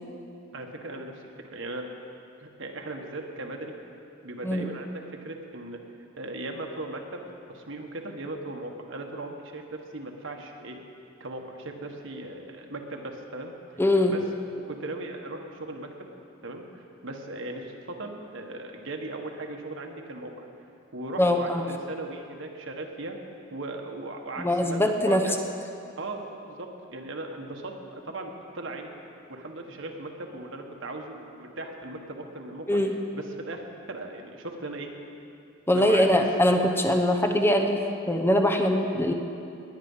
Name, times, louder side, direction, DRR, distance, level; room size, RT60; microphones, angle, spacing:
voice 1, 0.5-1.9 2.4-3.8 4.2-5.8 6.2-7.2 7.5-10.8 11.2-13.5 14.1-14.2 14.7-15.9 16.4-20.5 20.9-23.2 23.5-25.4 26.0-28.9 29.3-32.8 33.1-34.9 35.7-36.2, right 2 dB, 70° right, 2 dB, 1.5 m, -38 dB
voice 2, 13.8-14.1 21.2-21.6 24.4-25.3 32.7-32.9 35.7-37.8 38.1-39.1, left 1 dB, 10° left, 4 dB, 0.8 m, -22 dB
20.0 x 9.5 x 5.6 m, 2.6 s
head